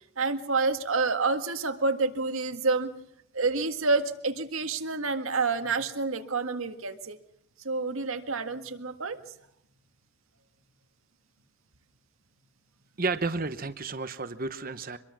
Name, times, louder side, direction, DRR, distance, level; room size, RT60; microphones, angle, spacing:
voice 1, 0.2-2.9 3.3-7.2 7.6-9.2, right 3 dB, 75° right, 7 dB, 1.9 m, -28 dB
voice 2, 13.0-15.0, right 3 dB, 40° right, 10 dB, 1.0 m, -31 dB
25.5 x 22.0 x 6.2 m, 0.73 s
head